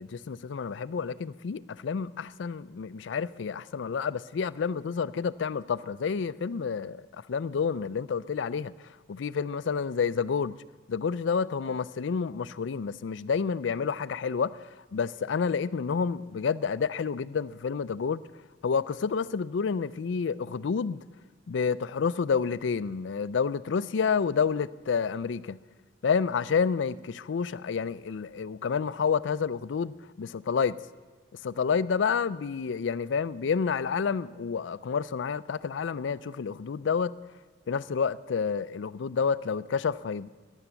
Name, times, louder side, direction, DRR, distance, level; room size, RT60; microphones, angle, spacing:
voice 1, 0.0-7.0 7.3-10.6 10.9-18.2 18.6-21.0 21.5-25.6 26.0-30.8 31.4-37.1 37.7-40.3, left 6 dB, 80° left, 0.4 m, -29 dB
15.0 x 11.0 x 7.0 m
head